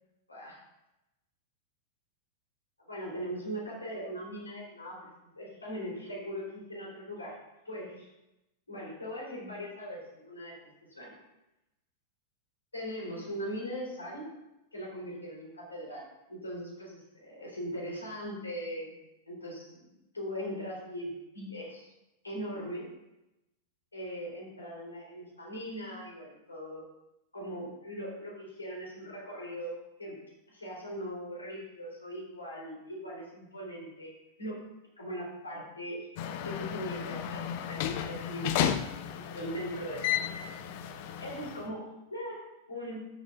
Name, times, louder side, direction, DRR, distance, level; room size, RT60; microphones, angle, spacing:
voice 1, 0.3-0.6 2.9-7.4 7.7-8.1 8.7-10.6 10.9-11.1 12.7-14.2 14.7-19.0 19.3-19.8 20.1-21.9 22.2-22.9 23.9-26.9 27.3-30.2 30.5-34.1 34.4-34.6 35.0-36.1 36.4-38.9 39.1-40.6 41.2-43.1, equal, 80° left, -3 dB, 3.6 m, -40 dB
sound 1, 36.2-41.7, left 10 dB, 50° left, 0.5 m, -33 dB
13.0 x 7.7 x 2.5 m, 0.93 s
figure-of-eight pair, 95°, 0 cm